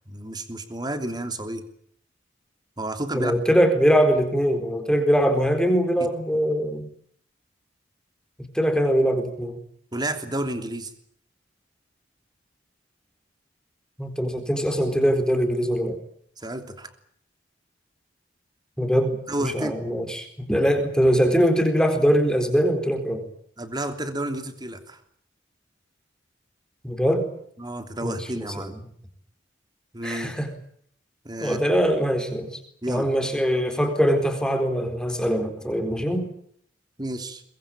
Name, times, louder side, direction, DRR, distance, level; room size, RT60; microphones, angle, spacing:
voice 1, 0.1-1.7 2.8-3.3 9.9-10.9 16.4-16.9 19.3-19.7 23.6-25.0 27.6-28.8 29.9-30.4 31.2-31.6 32.8-33.0 37.0-37.4, right 1 dB, 20° right, 7 dB, 3.1 m, -31 dB
voice 2, 3.1-6.9 8.4-9.6 14.0-16.0 18.8-23.2 26.8-27.3 28.0-28.2 28.6-28.7 30.0-30.5 31.4-32.6 32.9-36.3, equal, 5° left, 5 dB, 4.2 m, -22 dB
23.5 x 21.5 x 8.9 m, 0.64 s
head